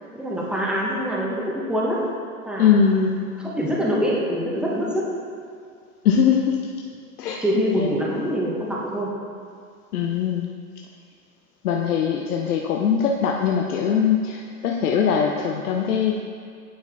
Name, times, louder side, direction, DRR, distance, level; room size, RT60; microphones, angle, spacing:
voice 1, 0.1-2.0 2.4-2.8 3.4-5.0 7.4-9.1, equal, ahead, -5 dB, 1.0 m, -24 dB
voice 2, 2.6-3.2 6.0-6.6 7.2-7.4 7.8-7.9 9.9-10.5 11.6-16.2, left 7 dB, 80° left, 0 dB, 0.7 m, -21 dB
8.7 x 4.6 x 3.5 m, 2.2 s
hypercardioid pair, 120°, 44 cm